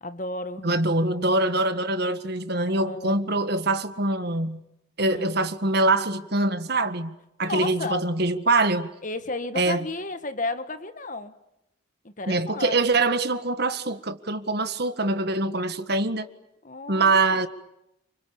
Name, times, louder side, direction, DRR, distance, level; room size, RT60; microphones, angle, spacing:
voice 1, 0.0-0.7 2.7-3.3 5.0-5.3 7.4-8.1 9.0-11.3 12.0-12.8 16.6-17.5, left 2 dB, 40° left, 1.6 m, -33 dB
voice 2, 0.6-4.6 5.0-7.1 7.4-8.9 9.6-9.9 12.3-16.3 16.9-17.5, right 2 dB, 55° right, 1.8 m, -24 dB
29.5 x 27.0 x 7.2 m
head